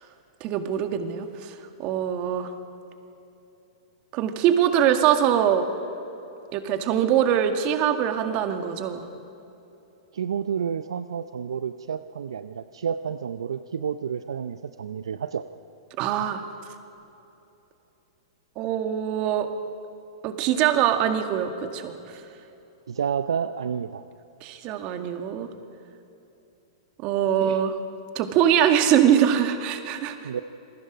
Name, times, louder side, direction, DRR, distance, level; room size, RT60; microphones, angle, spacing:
voice 1, 0.4-1.5 1.8-2.5 4.1-5.7 6.5-9.0 16.0-16.4 18.6-19.5 20.2-21.9 24.4-25.5 27.0-27.8 28.2-30.2, right 9 dB, 40° right, 7 dB, 1.9 m, -23 dB
voice 2, 10.1-15.4 22.9-24.0 27.4-27.6 30.2-30.4, right 7 dB, 75° right, 12 dB, 0.6 m, -30 dB
27.0 x 20.0 x 5.1 m, 2.9 s
hypercardioid pair, 110°, 3 cm